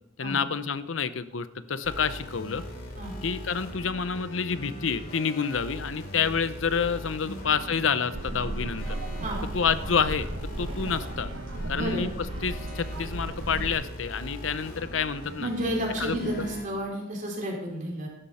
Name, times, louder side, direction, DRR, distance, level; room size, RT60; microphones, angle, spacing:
voice 1, 0.2-2.6 3.2-9.0 9.5-10.3 10.6-11.3 11.7-12.1 12.4-15.5 16.0-16.5, left 6 dB, 85° left, 13 dB, 0.7 m, -28 dB
sound 1, 1.8-16.7, equal, 50° left, 3.0 m, -40 dB
sound 2, 8.1-13.7, right 1 dB, 90° right, 1.1 m, -35 dB
voice 2, 11.7-12.0 15.4-18.1, right 1 dB, 45° right, -2 dB, 4.7 m, -31 dB
15.5 x 12.5 x 4.3 m, 0.85 s
head